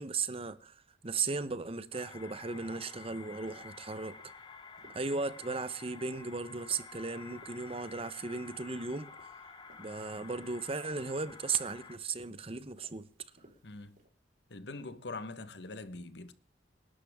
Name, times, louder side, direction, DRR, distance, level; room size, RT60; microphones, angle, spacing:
voice 1, 0.0-4.3 4.9-9.4 9.8-13.1, right 4 dB, 35° right, 0.9 m, -36 dB
sound 1, 1.9-12.0, left 4 dB, 25° left, 1.4 m, -51 dB
sound 2, 2.3-14.1, right 1 dB, 50° right, 4.5 m, -63 dB
voice 2, 13.6-14.0 14.5-16.3, left 3 dB, 70° left, 1.3 m, -43 dB
27.0 x 11.5 x 3.6 m
head